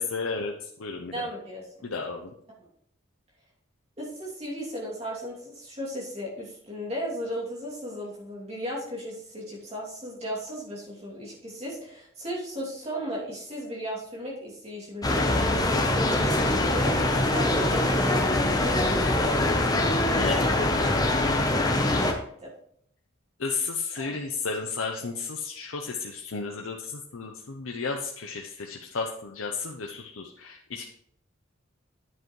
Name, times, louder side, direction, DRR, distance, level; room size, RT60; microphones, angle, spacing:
voice 1, 0.0-1.3 1.8-2.3 20.2-20.7 23.4-30.9, left 4 dB, 85° left, 2 dB, 0.7 m, -33 dB
voice 2, 1.1-1.7 2.6-2.7 4.0-19.4 21.8-22.5 24.0-24.2, equal, 30° right, -4 dB, 2.7 m, -36 dB
sound 1, 15.0-22.1, left 1 dB, 20° left, 0.8 m, -23 dB
9.6 x 7.8 x 3.2 m, 0.69 s
head